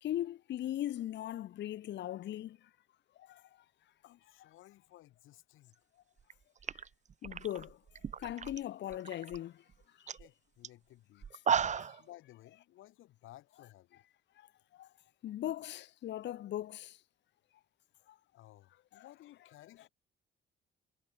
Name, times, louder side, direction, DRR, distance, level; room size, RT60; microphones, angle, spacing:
voice 1, 0.0-2.6 3.2-3.4 7.2-7.8 8.2-9.6 11.5-12.0 14.4-14.5 14.7-14.9 15.2-17.0 18.9-19.0, left 12 dB, 65° left, 0.7 m, -39 dB
voice 2, 4.0-5.8 10.2-11.3 12.0-14.0 18.3-19.9, left 15 dB, 85° left, 5.6 m, -57 dB
sound 1, 6.2-6.3 6.6-8.6 8.9-9.4 9.7-9.8 10.1-10.3 10.6-10.7 11.2-12.0, right 7 dB, 35° right, 0.7 m, -34 dB
cardioid pair, 90°, 20 cm